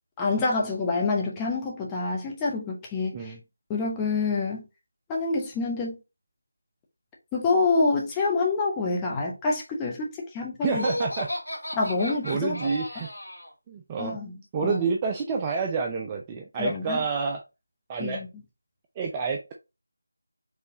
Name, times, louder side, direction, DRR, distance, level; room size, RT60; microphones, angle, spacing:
voice 1, 0.2-3.3 3.7-4.6 5.1-6.0 7.3-10.8 11.7-12.6 13.0-13.1 14.0-14.3 14.6-14.8 16.6-17.0 18.0-18.3, left 3 dB, 10° left, 1.0 m, -27 dB
voice 2, 10.6-11.3 12.2-13.1 13.7-14.2 14.5-17.4 17.9-18.2 19.0-19.5, right 5 dB, 15° right, 0.4 m, -28 dB
Laughter, 10.7-13.5, left 1 dB, 60° left, 2.2 m, -33 dB
4.9 x 3.2 x 2.8 m
figure-of-eight pair, 165°, 0 cm